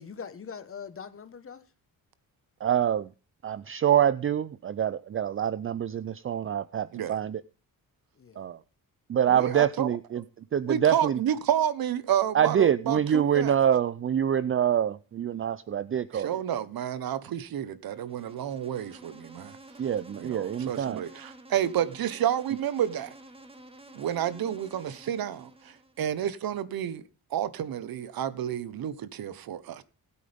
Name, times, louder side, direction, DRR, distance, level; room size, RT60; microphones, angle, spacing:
voice 1, 0.0-1.6 8.2-8.5 9.4-9.6, left 6 dB, 35° left, 1.4 m, -42 dB
voice 2, 2.6-3.1 3.4-7.4 8.4-8.6 9.1-10.2 10.5-11.2 12.3-16.3 19.8-21.0, right 9 dB, 35° right, 0.5 m, -25 dB
voice 3, 9.3-10.0 10.7-13.6 16.1-19.6 20.2-23.1 23.9-27.0 27.3-29.8, right 10 dB, 70° right, 1.2 m, -30 dB
Insect, 17.8-26.1, right 1 dB, 15° right, 1.9 m, -50 dB
20.0 x 8.6 x 3.6 m
cardioid pair, 135°, 37 cm